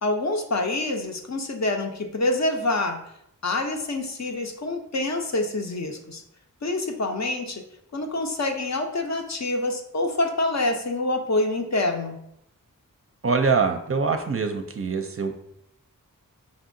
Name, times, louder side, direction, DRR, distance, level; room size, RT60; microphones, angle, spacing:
voice 1, 0.0-3.0 3.4-6.2 6.6-7.6 7.9-12.2, left 2 dB, 50° left, 3 dB, 0.6 m, -26 dB
voice 2, 13.2-15.3, right 5 dB, 40° right, 5 dB, 0.5 m, -24 dB
5.2 x 2.7 x 2.6 m, 0.76 s
wide cardioid pair, 50°, 34 cm